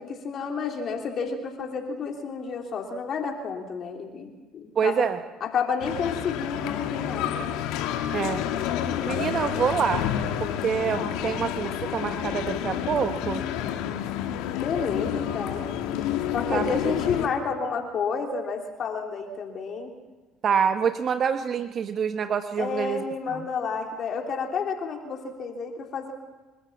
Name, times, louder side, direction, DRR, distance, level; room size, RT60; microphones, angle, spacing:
voice 1, 0.0-5.1 5.4-7.4 14.6-15.7 16.3-19.9 22.6-26.1, left 5 dB, 50° left, 2 dB, 3.2 m, -30 dB
voice 2, 4.8-5.2 8.1-8.4 9.1-10.1 10.4-13.4 16.5-16.7 20.4-23.0 23.3-23.4, right 7 dB, 50° right, 8 dB, 1.0 m, -26 dB
sound 1, 5.8-17.3, left 10 dB, 75° left, 1.8 m, -29 dB
28.0 x 13.5 x 7.3 m, 1.3 s
hypercardioid pair, 70°, 0 cm